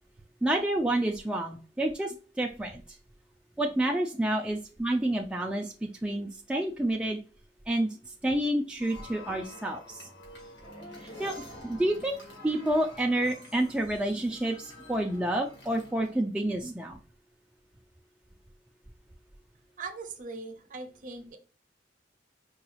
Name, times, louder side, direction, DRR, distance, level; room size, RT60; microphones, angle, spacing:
voice 1, 0.4-2.8 3.6-7.2 7.7-10.1 11.2-12.2 12.4-17.0, right 1 dB, 5° right, 0 dB, 0.3 m, -29 dB
sound 1, 8.8-16.2, left 1 dB, 65° left, 1.7 m, -48 dB
voice 2, 19.8-21.4, right 3 dB, 45° right, 7 dB, 0.6 m, -40 dB
4.7 x 2.3 x 3.1 m, 0.38 s
head